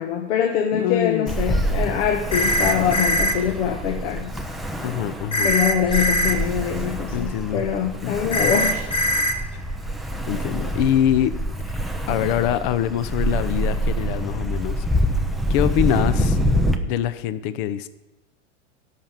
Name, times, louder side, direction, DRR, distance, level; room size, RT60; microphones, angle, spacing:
voice 1, 0.0-4.3 5.4-8.9, left 8 dB, 70° left, 4 dB, 1.2 m, -24 dB
voice 2, 0.7-1.3 4.8-5.5 7.1-7.6 8.0-8.5 9.5-9.6 10.3-11.3 11.6-11.8 12.1-14.8 15.5-16.4 16.9-17.9, left 11 dB, 45° left, 14 dB, 0.7 m, -24 dB
Ocean, 1.3-16.8, equal, ahead, 0.4 m, -26 dB
sound 1, 2.3-3.3 5.3-6.3 8.3-9.3, equal, 15° left, 0.8 m, -21 dB
13.0 x 5.8 x 7.4 m, 1.1 s
supercardioid pair, 140°, 36 cm